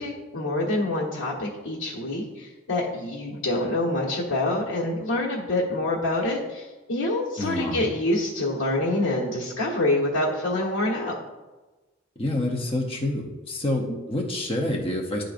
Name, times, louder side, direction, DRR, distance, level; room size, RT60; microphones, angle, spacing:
voice 1, 0.0-11.2 13.9-14.0, left 1 dB, 80° left, -8 dB, 1.3 m, -26 dB
voice 2, 7.4-7.9 12.2-15.2, left 1 dB, 30° left, 1 dB, 0.7 m, -27 dB
11.0 x 3.8 x 2.5 m, 1.2 s
head